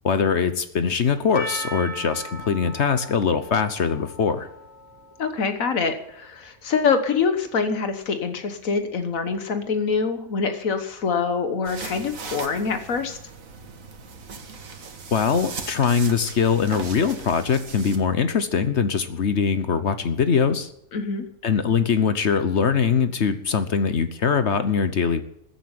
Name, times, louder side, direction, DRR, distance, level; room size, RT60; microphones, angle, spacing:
voice 1, 0.0-4.5 15.1-20.7 21.4-25.2, left 6 dB, 60° left, 11 dB, 1.2 m, -22 dB
Percussion, 1.3-5.9, equal, 5° left, 3.5 m, -38 dB
voice 2, 5.2-13.2 20.9-21.3, left 5 dB, 85° left, 8 dB, 1.7 m, -25 dB
sound 1, 11.6-18.0, right 4 dB, 85° right, 1.9 m, -38 dB
15.0 x 8.5 x 9.7 m, 0.77 s
omnidirectional pair, 1.4 m